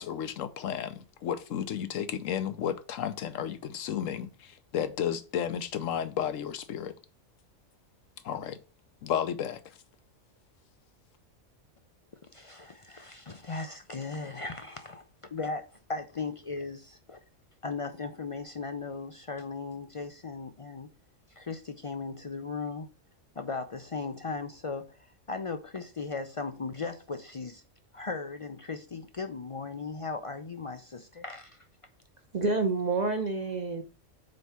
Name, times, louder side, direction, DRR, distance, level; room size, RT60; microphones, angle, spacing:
voice 1, 0.0-6.9 8.2-8.6 9.0-9.6, left 9 dB, 80° left, 1.1 m, -33 dB
voice 2, 12.3-15.6 15.9-17.2 17.6-20.9 21.3-22.9 23.4-27.6 27.9-31.7, left 4 dB, 60° left, 0.3 m, -37 dB
voice 3, 32.3-33.8, right 3 dB, 40° right, 0.8 m, -28 dB
5.3 x 4.6 x 5.6 m
omnidirectional pair, 1.3 m